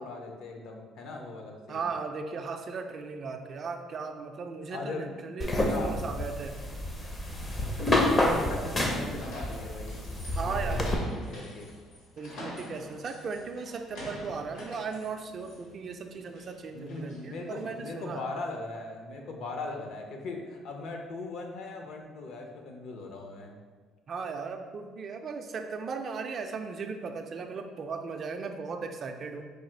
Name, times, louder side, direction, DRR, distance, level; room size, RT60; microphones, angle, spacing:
voice 1, 0.0-1.9 4.7-5.1 5.4-6.3 7.3-7.4 8.1-10.1 10.4-11.7 16.7-23.6, left 3 dB, 60° left, 3 dB, 0.6 m, -39 dB
voice 2, 1.7-6.6 10.3-11.0 12.2-18.2 24.1-29.4, right 5 dB, 40° right, 5 dB, 0.3 m, -37 dB
sound 1, 5.4-11.0, left 1 dB, 20° left, 0.5 m, -29 dB
sound 2, 7.4-17.8, left 1 dB, 75° left, 1.3 m, -47 dB
4.8 x 2.4 x 4.4 m, 1.5 s
cardioid pair, 150°, 0 cm